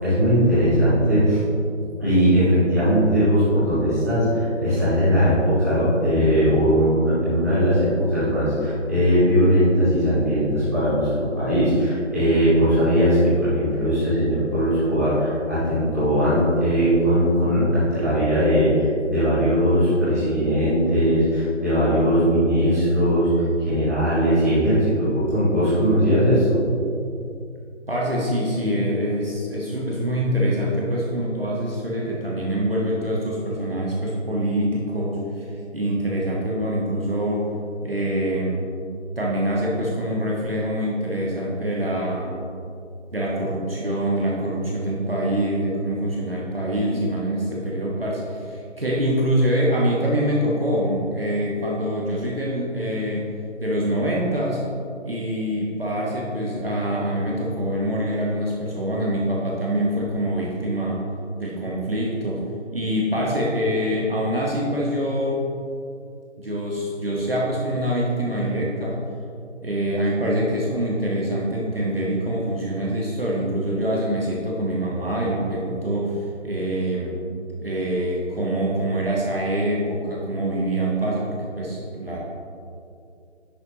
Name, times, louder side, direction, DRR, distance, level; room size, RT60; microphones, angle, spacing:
voice 1, 0.0-1.4 2.0-7.8 8.1-23.3 23.6-26.5, equal, 10° right, -15 dB, 2.2 m, -19 dB
voice 2, 27.9-37.5 37.8-38.6 39.1-42.4 43.1-53.3 53.6-54.6 55.0-61.0 61.4-62.4 62.7-65.5 66.4-69.0 69.6-77.1 77.6-82.2, right 1 dB, 50° right, -4 dB, 1.5 m, -25 dB
10.5 x 8.4 x 3.0 m, 2.5 s
figure-of-eight pair, 180°, 38 cm